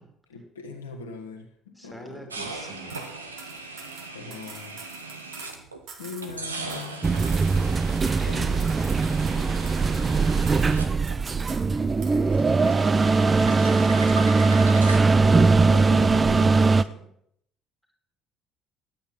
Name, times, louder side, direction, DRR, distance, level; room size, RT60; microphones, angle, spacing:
voice 1, 0.3-2.3 3.8-4.8 6.0-7.0 8.2-9.1 9.4-10.3 15.2-17.1, left 4 dB, 75° left, 2 dB, 1.4 m, -41 dB
voice 2, 1.8-3.0 8.2-8.4 9.1-9.4 10.9-11.0, right 1 dB, ahead, 5 dB, 2.2 m, -45 dB
sound 1, 2.3-5.8 6.2-11.8 12.0-15.0, right 3 dB, 85° right, 1.0 m, -39 dB
sound 2, 2.9-3.1 3.4-5.6 5.9-7.7 8.0-8.3 8.6-10.2 10.5-11.7 12.0-12.2, right 5 dB, 55° right, 2.2 m, -45 dB
sound 3, 7.0-16.8, right 4 dB, 25° right, 0.5 m, -20 dB
12.0 x 8.4 x 5.9 m, 0.71 s
figure-of-eight pair, 50°, 0 cm